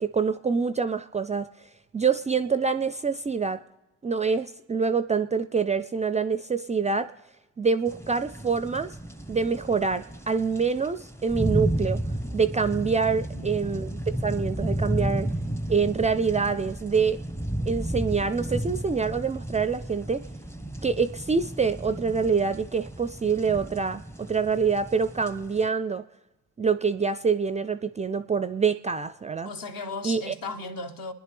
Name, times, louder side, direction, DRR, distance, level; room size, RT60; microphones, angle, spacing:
voice 1, 0.0-1.5 1.9-3.6 4.0-7.1 7.6-9.0 9.3-12.0 12.3-15.3 15.7-17.2 17.7-20.3 20.8-26.0 26.6-29.5 30.0-30.3, right 5 dB, 20° right, 0.4 m, -26 dB
sound 1, 7.9-25.7, right 1 dB, 5° left, 0.7 m, -33 dB
voice 2, 13.1-13.5 29.4-31.1, left 3 dB, 55° left, 1.3 m, -36 dB
27.5 x 10.5 x 3.4 m
hypercardioid pair, 45°, 41 cm